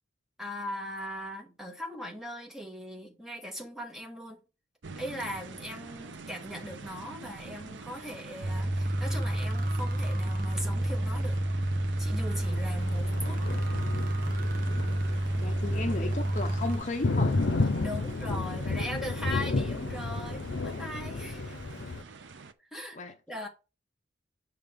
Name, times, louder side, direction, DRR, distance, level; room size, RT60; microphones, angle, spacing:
voice 1, 0.4-4.4 4.9-11.4 12.0-13.4 17.8-21.6 22.7-23.0 23.3-23.5, equal, ahead, 1.7 m, -39 dB
sound 1, 4.8-22.5, right 4 dB, 70° right, 0.6 m, -46 dB
sound 2, 8.4-16.8, right 1 dB, 50° right, 1.0 m, -29 dB
Thunder, 12.3-22.0, left 2 dB, 75° left, 0.7 m, -32 dB
voice 2, 14.7-15.1 15.4-17.4 22.9-23.1, left 2 dB, 40° left, 0.7 m, -35 dB
8.4 x 5.9 x 3.6 m
head